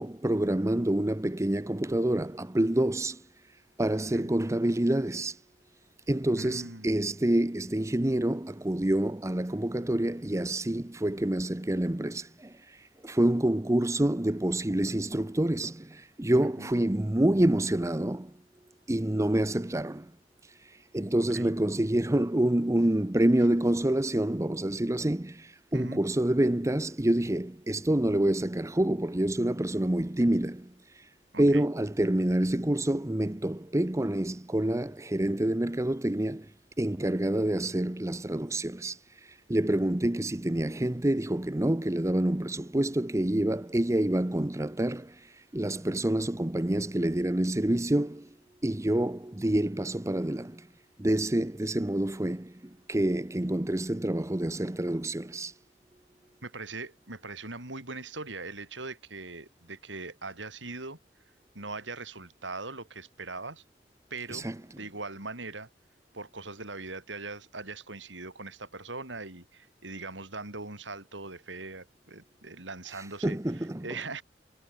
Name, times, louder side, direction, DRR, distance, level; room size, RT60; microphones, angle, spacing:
voice 1, 0.0-3.2 3.8-5.4 6.1-18.3 18.9-20.1 20.6-31.1 31.4-36.5 36.8-48.3 48.6-50.7 51.0-55.5 64.3-64.6 73.0-73.9, right 1 dB, 15° right, 0.7 m, -27 dB
voice 2, 6.4-7.0 16.6-16.8 21.3-21.5 25.7-26.0 31.3-31.6 56.4-61.0 61.5-63.6 64.1-64.5 64.8-65.7 66.1-74.2, right 3 dB, 80° right, 6.1 m, -41 dB
head